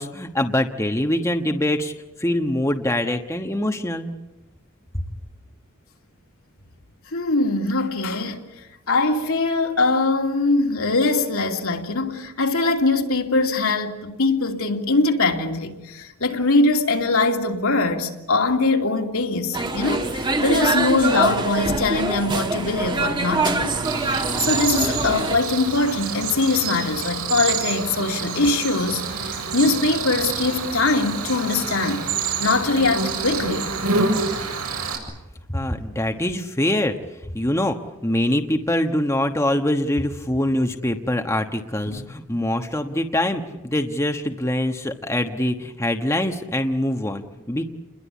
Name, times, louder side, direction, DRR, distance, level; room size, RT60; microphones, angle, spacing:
voice 1, 0.0-1.9 2.2-4.1 35.5-37.0 37.3-37.8 38.0-47.6, left 1 dB, 15° left, 1.2 m, -24 dB
voice 2, 7.1-8.4 8.9-32.0 32.4-33.7 41.9-42.0, left 3 dB, 70° left, 2.9 m, -22 dB
sound 1, 19.5-25.4, right 2 dB, 20° right, 1.5 m, -24 dB
Cricket, 23.8-35.0, right 4 dB, 85° right, 7.6 m, -27 dB
29.5 x 21.5 x 8.3 m
head